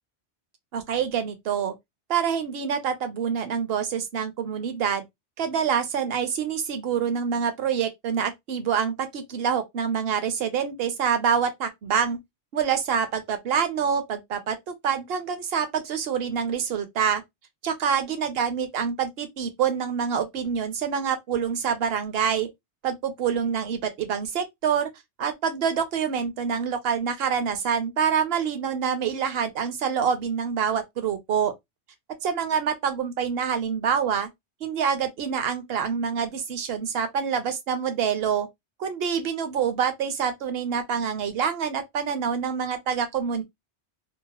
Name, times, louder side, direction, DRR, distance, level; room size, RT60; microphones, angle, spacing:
voice 1, 0.7-1.7 2.1-5.0 5.4-12.2 12.5-17.2 17.6-22.5 22.8-24.9 25.2-31.5 32.2-34.3 34.6-38.5 38.8-43.4, right 7 dB, 65° right, 0.8 m, -26 dB
2.8 x 2.0 x 2.9 m
omnidirectional pair, 1.1 m